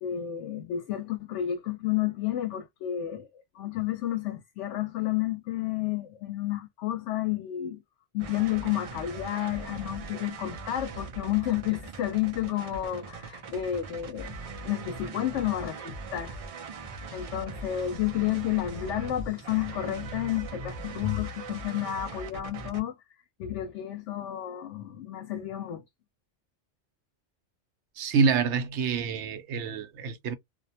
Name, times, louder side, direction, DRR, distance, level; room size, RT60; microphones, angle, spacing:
voice 1, 0.0-3.3 3.6-7.8 8.1-14.4 14.6-16.4 17.1-22.9 23.4-25.8, left 12 dB, 85° left, 0.9 m, -31 dB
sound 1, 8.2-22.8, right 4 dB, 50° right, 0.4 m, -41 dB
voice 2, 28.0-30.3, right 6 dB, 80° right, 0.9 m, -27 dB
2.4 x 2.1 x 2.7 m
omnidirectional pair, 1.2 m